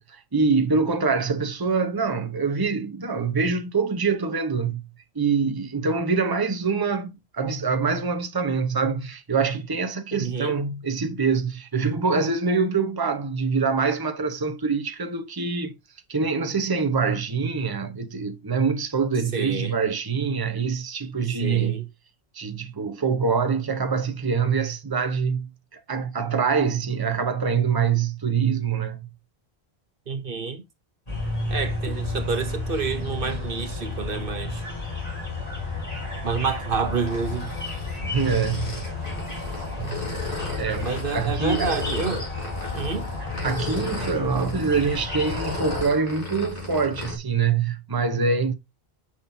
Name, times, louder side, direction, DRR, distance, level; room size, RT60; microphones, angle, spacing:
voice 1, 0.0-4.9 5.1-15.8 16.1-21.8 22.3-29.1 38.0-38.8 39.8-40.0 40.6-41.8 43.4-48.5, right 5 dB, 20° right, 1.0 m, -25 dB
voice 2, 10.1-10.5 19.3-19.8 21.4-21.8 30.1-30.6 31.5-34.6 36.2-37.5 40.8-42.3 42.7-43.1, right 5 dB, 55° right, 1.2 m, -28 dB
sound 1, 31.1-45.8, left 3 dB, 35° left, 4.9 m, -32 dB
sound 2, 37.0-47.2, left 3 dB, 55° left, 4.4 m, -35 dB
9.0 x 6.4 x 2.8 m
omnidirectional pair, 1.1 m